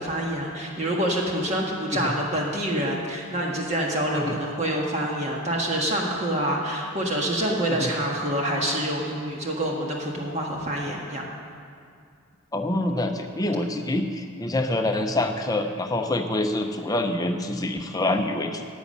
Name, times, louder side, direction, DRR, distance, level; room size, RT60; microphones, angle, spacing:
voice 1, 0.0-11.2, right 1 dB, 30° right, -2 dB, 1.6 m, -26 dB
voice 2, 12.5-18.7, left 1 dB, 15° left, 5 dB, 0.7 m, -26 dB
11.0 x 7.2 x 9.6 m, 2.3 s
head